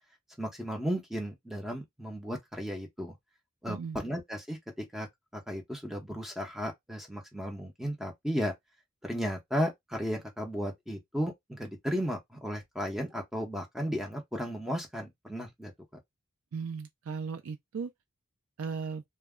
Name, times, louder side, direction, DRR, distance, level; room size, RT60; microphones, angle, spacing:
voice 1, 0.4-3.1 3.6-5.1 5.3-8.5 9.0-15.7, equal, ahead, 0.7 m, -34 dB
voice 2, 3.7-4.0 16.5-17.9 18.6-19.0, right 5 dB, 80° right, 0.4 m, -36 dB
2.2 x 2.1 x 3.5 m
head